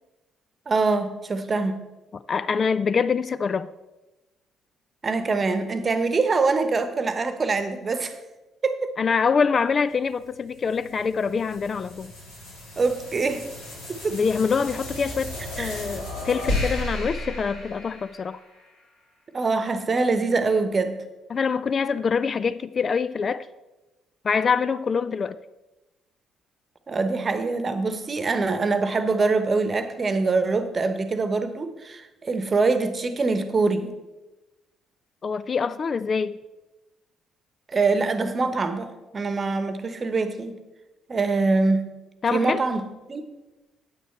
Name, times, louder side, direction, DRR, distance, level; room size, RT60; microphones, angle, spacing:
voice 1, 0.7-1.8 5.0-8.2 8.6-8.9 12.8-13.5 13.9-14.2 15.6-15.8 19.3-21.0 26.9-33.9 37.7-40.6 41.1-41.9 42.3-43.3, right 3 dB, 35° right, 1.0 m, -24 dB
voice 2, 2.1-3.7 9.0-12.1 14.1-18.4 21.3-23.5 24.2-25.4 35.2-36.4 42.2-42.6, left 5 dB, 40° left, 0.3 m, -25 dB
sound 1, 10.0-18.6, left 1 dB, 75° left, 2.8 m, -34 dB
9.3 x 8.9 x 4.4 m
figure-of-eight pair, 45°, 0 cm